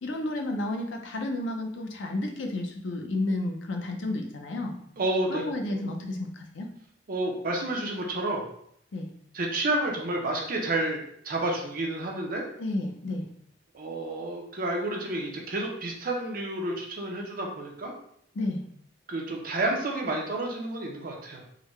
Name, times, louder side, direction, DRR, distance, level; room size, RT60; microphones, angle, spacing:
voice 1, 0.0-4.7 5.3-6.7 8.9-9.1 12.6-13.2 18.3-18.6, left 2 dB, 75° left, 3 dB, 0.6 m, -31 dB
voice 2, 5.0-5.4 5.7-5.8 7.1-8.4 9.3-12.5 13.7-17.9 19.1-21.4, right 2 dB, 50° right, 0 dB, 0.6 m, -30 dB
3.7 x 2.2 x 3.1 m, 0.70 s
head